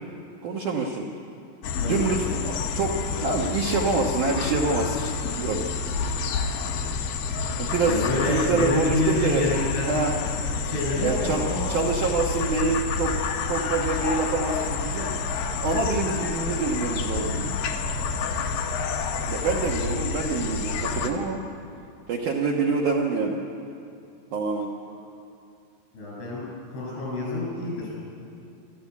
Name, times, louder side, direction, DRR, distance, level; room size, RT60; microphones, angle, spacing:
voice 1, 0.4-1.1 1.9-5.6 7.6-8.0 8.2-9.4 9.9-10.1 11.0-11.4 11.7-13.1 13.5-15.2 15.6-17.5 19.3-21.4 22.1-23.4 24.3-24.7, right 4 dB, 70° right, -1 dB, 1.9 m, -26 dB
sound 1, 1.6-21.1, left 5 dB, 65° left, 2.4 m, -29 dB
voice 2, 1.8-2.4 7.9-9.9 10.6-11.7 24.8-24.9 25.9-26.4 26.7-27.9, left 2 dB, 85° left, -4 dB, 10.0 m, -28 dB
25.5 x 13.5 x 8.4 m, 2.5 s
omnidirectional pair, 5.4 m